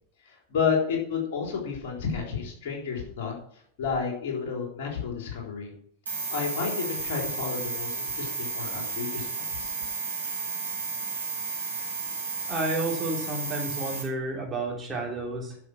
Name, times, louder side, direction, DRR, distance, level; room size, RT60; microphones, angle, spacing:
voice 1, 0.2-5.7 6.3-9.7, left 6 dB, 50° left, -1 dB, 3.6 m, -31 dB
sound 1, 6.0-14.0, right 4 dB, 75° right, 4.9 m, -33 dB
voice 2, 12.5-15.6, right 2 dB, 15° right, -3 dB, 3.6 m, -31 dB
11.0 x 6.3 x 6.2 m, 0.65 s
figure-of-eight pair, 90°, 0 cm